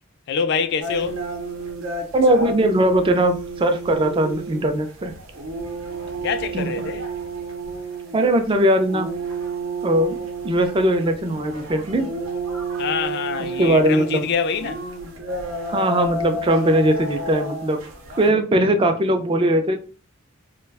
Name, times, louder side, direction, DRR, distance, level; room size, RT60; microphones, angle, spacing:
voice 1, 0.3-1.3 6.2-7.1 12.8-14.9, left 6 dB, 55° left, 0.3 m, -25 dB
sound 1, 0.8-18.3, right 2 dB, 80° right, 0.7 m, -31 dB
voice 2, 2.1-5.1 6.5-6.7 8.1-9.1 9.8-10.2 10.4-12.1 13.6-14.3 15.7-17.8 18.2-19.8, right 1 dB, 25° right, 0.3 m, -19 dB
2.3 x 2.1 x 3.3 m
head